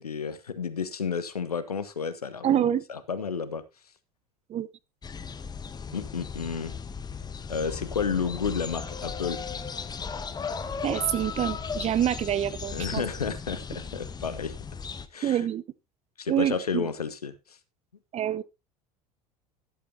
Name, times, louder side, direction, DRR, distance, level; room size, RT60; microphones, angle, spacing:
voice 1, 0.0-3.6 5.9-6.7 7.5-9.4 12.7-14.5 15.1-15.4 16.2-17.3, left 6 dB, 85° left, 15 dB, 1.0 m, -31 dB
voice 2, 2.4-2.8 4.5-4.7 10.8-13.0 15.2-15.6 16.3-16.9 18.1-18.4, right 11 dB, 35° right, 16 dB, 0.8 m, -26 dB
sound 1, 5.0-15.1, left 5 dB, 20° left, 1.0 m, -36 dB
13.0 x 11.5 x 2.7 m, 0.25 s
figure-of-eight pair, 70°, 19 cm